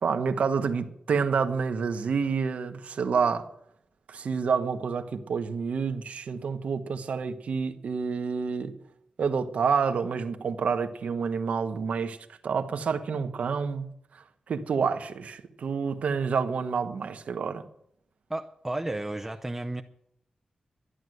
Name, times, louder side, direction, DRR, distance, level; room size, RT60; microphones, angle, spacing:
voice 1, 0.0-3.5 4.1-8.8 9.2-12.2 12.4-13.9 14.1-17.7, right 5 dB, 70° right, 1.2 m, -28 dB
voice 2, 18.3-19.8, right 1 dB, 10° right, 0.6 m, -32 dB
13.0 x 11.0 x 7.9 m
wide cardioid pair, 155°, 2 cm